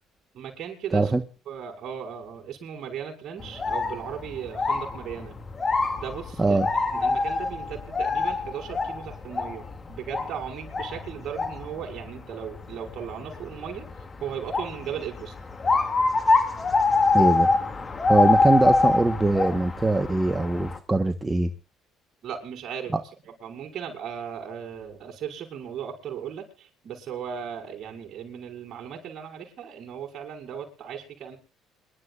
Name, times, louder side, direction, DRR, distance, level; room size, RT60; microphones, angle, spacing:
voice 1, 0.3-1.1 1.5-5.4 6.0-6.6 6.9-13.9 14.2-15.3 22.2-22.9 23.3-31.4, right 8 dB, 55° right, 2 dB, 6.4 m, -37 dB
sound 1, 3.4-20.8, left 3 dB, 30° left, 2.8 m, -26 dB
voice 2, 6.4-6.7 17.1-17.5 18.1-21.5 22.9-23.0, right 2 dB, 15° right, 7 dB, 1.5 m, -22 dB
27.0 x 12.0 x 2.6 m, 0.34 s
cardioid pair, 100°, 0 cm